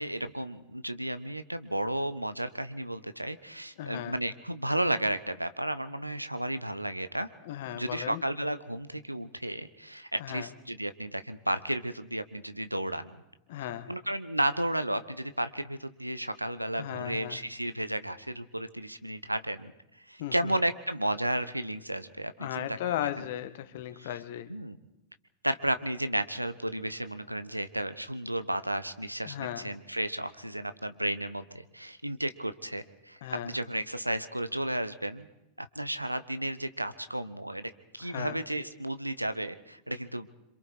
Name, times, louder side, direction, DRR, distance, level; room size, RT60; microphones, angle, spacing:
voice 1, 0.0-7.3 7.7-13.2 13.9-19.7 20.1-22.8 24.0-24.1 24.5-24.8 25.4-35.3 35.6-40.3, right 1 dB, 85° right, 12 dB, 1.2 m, -33 dB
voice 2, 3.8-4.2 7.4-8.2 10.2-10.5 13.5-13.9 16.8-17.4 20.2-20.5 22.4-24.5 29.2-29.7 33.2-33.5 38.0-38.4, left 12 dB, 55° left, 12 dB, 1.5 m, -36 dB
27.0 x 26.0 x 4.8 m, 0.91 s
figure-of-eight pair, 90°, 0 cm